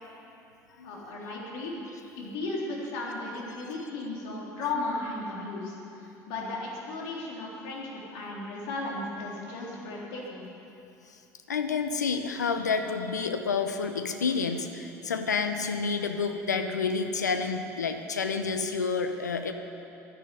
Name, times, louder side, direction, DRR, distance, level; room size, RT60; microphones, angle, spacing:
voice 1, 0.8-1.7 2.2-10.5, left 2 dB, 65° left, -3 dB, 3.6 m, -35 dB
voice 2, 11.5-19.5, left 5 dB, 90° left, 7 dB, 0.9 m, -29 dB
11.5 x 10.5 x 9.8 m, 2.8 s
hypercardioid pair, 65°, 9 cm